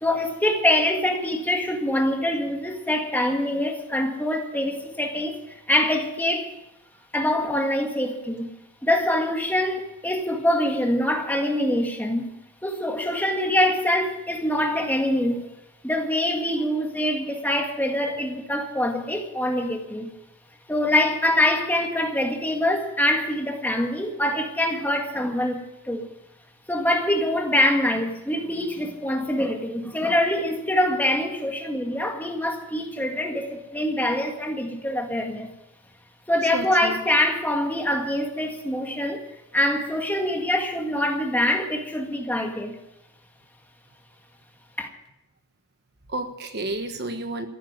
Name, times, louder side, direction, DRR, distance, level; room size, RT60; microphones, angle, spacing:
voice 1, 0.0-6.5 7.1-8.5 8.8-12.3 12.6-15.4 15.8-20.1 20.7-25.6 25.8-26.1 26.7-35.5 36.3-39.2 39.5-42.8 44.8-44.9, left 1 dB, 10° left, 1.7 m, -24 dB
voice 2, 36.5-37.0 46.1-47.5, right 2 dB, 50° right, 1.3 m, -31 dB
15.0 x 8.7 x 9.5 m
head